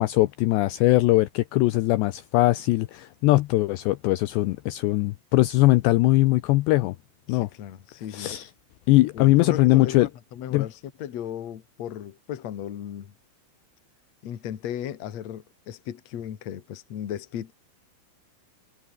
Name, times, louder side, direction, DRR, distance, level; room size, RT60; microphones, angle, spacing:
voice 1, 0.0-7.0 7.3-7.5 8.1-8.5 8.9-10.1 10.5-10.7, left 19 dB, 85° left, 2.5 m, -21 dB
voice 2, 7.3-8.3 9.1-13.1 14.2-17.5, left 10 dB, 55° left, 2.0 m, -36 dB
omnidirectional pair, 5.9 m